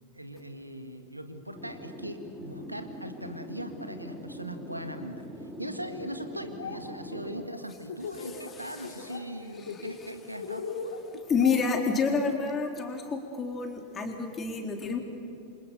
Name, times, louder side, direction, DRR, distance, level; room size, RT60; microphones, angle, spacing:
voice 1, 0.1-10.7, equal, 85° right, 7 dB, 1.9 m, -40 dB
sound 1, 1.5-7.5, equal, ahead, 3.5 m, -42 dB
Laughter, 6.3-6.8 7.1-8.5 8.8-9.2 9.5-12.4, left 5 dB, 65° left, 3.3 m, -38 dB
voice 2, 8.2-8.9 9.6-10.1 11.1-15.0, left 5 dB, 20° left, 3 dB, 3.8 m, -29 dB
28.5 x 26.0 x 7.1 m, 2.7 s
figure-of-eight pair, 90°, 0 cm